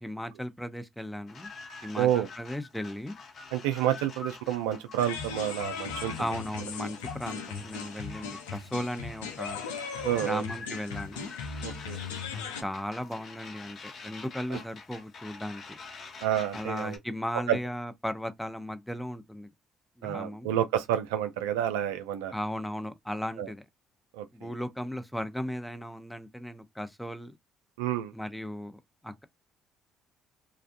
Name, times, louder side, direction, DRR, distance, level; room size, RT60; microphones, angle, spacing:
voice 1, 0.0-1.5 1.8-3.2 6.2-9.6 10.1-11.3 12.6-15.6 16.5-19.5 20.0-20.5 22.3-23.7 24.3-27.4 28.1-29.2, equal, 5° left, 0.6 m, -36 dB
sound 1, 1.3-17.0, left 4 dB, 50° left, 0.8 m, -46 dB
voice 2, 2.0-2.3 3.5-6.1 10.0-10.4 11.6-12.0 14.5-14.6 16.2-17.0 17.5-17.6 20.0-22.3 23.4-23.5 24.2-24.3 27.8-28.1, right 11 dB, 80° right, 0.3 m, -29 dB
sound 2, 5.0-12.6, left 6 dB, 85° left, 0.4 m, -38 dB
2.5 x 2.2 x 2.5 m
hypercardioid pair, 55°, 0 cm